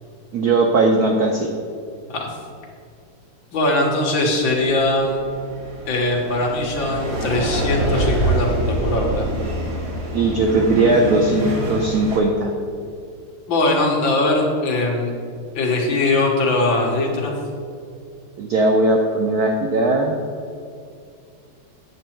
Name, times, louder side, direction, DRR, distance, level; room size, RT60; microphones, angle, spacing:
voice 1, 0.3-1.5 10.1-12.5 18.4-20.2, right 2 dB, 70° right, 2 dB, 0.9 m, -18 dB
voice 2, 3.5-5.2 5.9-9.3 13.5-15.1 15.6-17.3, left 2 dB, 65° left, -1 dB, 2.0 m, -20 dB
sound 1, 4.6-12.2, right 2 dB, 50° right, 2.3 m, -25 dB
8.6 x 7.5 x 4.4 m, 2.3 s
omnidirectional pair, 2.4 m